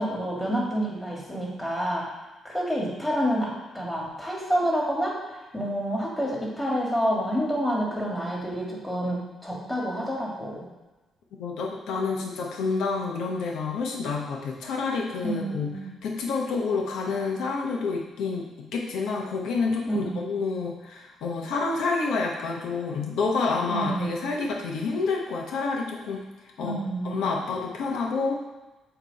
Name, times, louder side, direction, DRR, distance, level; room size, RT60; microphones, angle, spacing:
voice 1, 0.0-2.1 2.4-10.6 15.2-15.9 19.9-20.2 23.7-24.3 26.6-27.2, equal, 10° left, -4 dB, 2.0 m, -28 dB
voice 2, 11.4-15.7 16.0-26.2 26.6-26.8 27.0-28.3, left 4 dB, 80° left, 0 dB, 1.0 m, -28 dB
8.0 x 3.1 x 4.1 m, 1.1 s
cardioid pair, 90°, 0 cm